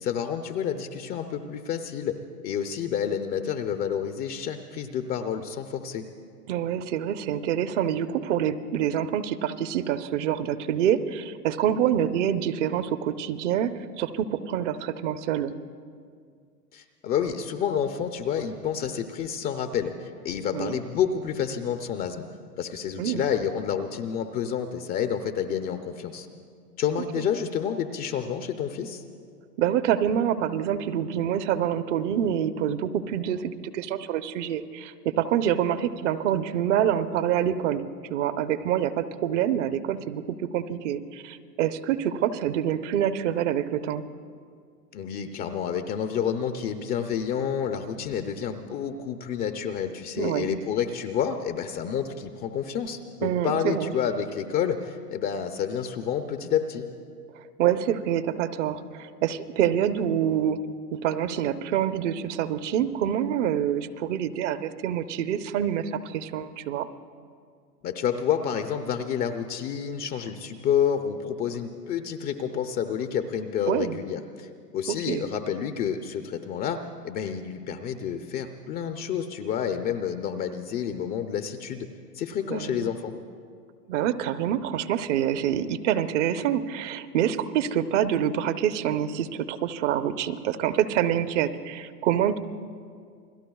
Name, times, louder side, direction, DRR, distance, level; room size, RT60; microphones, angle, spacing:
voice 1, 0.0-6.1 16.7-22.2 22.6-26.3 26.8-29.0 44.9-56.9 67.8-81.9 82.1-83.1, left 8 dB, 20° left, 8 dB, 0.5 m, -29 dB
voice 2, 6.5-15.5 20.5-20.8 23.0-23.2 29.6-37.8 38.1-40.2 40.5-44.0 50.2-50.6 53.2-53.9 57.4-60.6 60.9-66.9 73.7-74.0 74.9-75.3 82.5-82.9 83.9-92.4, right 10 dB, 50° right, 11 dB, 0.9 m, -26 dB
29.0 x 21.5 x 2.3 m, 2.2 s
hypercardioid pair, 105°, 48 cm